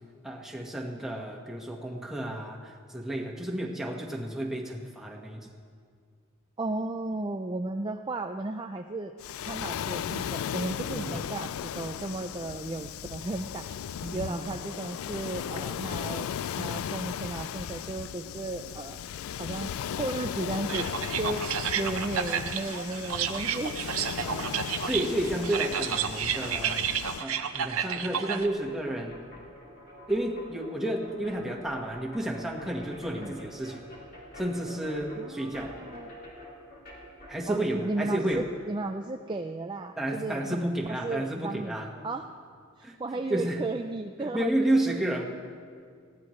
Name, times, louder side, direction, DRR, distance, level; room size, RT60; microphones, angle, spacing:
voice 1, 0.2-5.5 10.9-11.2 14.0-14.5 24.2-26.8 27.2-29.2 30.1-33.8 34.4-35.7 37.3-38.4 40.0-42.1 42.8-43.0 43.3-43.6 44.2-45.2, right 1 dB, ahead, -1 dB, 1.5 m, -31 dB
voice 2, 6.6-9.1 9.4-13.7 14.1-16.3 16.6-19.0 19.4-21.4 21.7-23.8 33.1-33.4 35.2-36.1 37.5-40.7 41.0-41.8 42.0-42.3 42.8-44.5, right 2 dB, 20° right, 5 dB, 0.4 m, -34 dB
Waves surf, 9.2-27.3, left 8 dB, 75° left, 0.3 m, -36 dB
sound 1, 20.7-21.3 22.3-22.4 22.6-24.5 24.7-38.5, equal, 45° left, 3.4 m, -49 dB
sound 2, 20.7-28.5, right 8 dB, 80° right, 0.8 m, -31 dB
21.0 x 16.0 x 3.2 m, 2.2 s
head